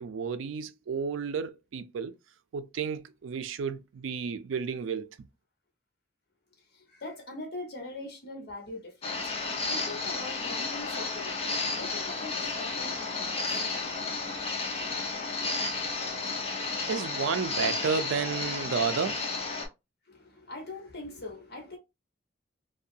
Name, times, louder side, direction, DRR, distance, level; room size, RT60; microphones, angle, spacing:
voice 1, 0.0-2.1 2.5-5.1 16.9-19.2, right 6 dB, 75° right, 0.4 m, -32 dB
voice 2, 6.6-13.7 15.4-15.5 20.0-21.8, left 2 dB, 55° left, 1.0 m, -43 dB
sound 1, 9.0-19.7, left 3 dB, 30° left, 0.6 m, -32 dB
2.6 x 2.3 x 2.6 m
head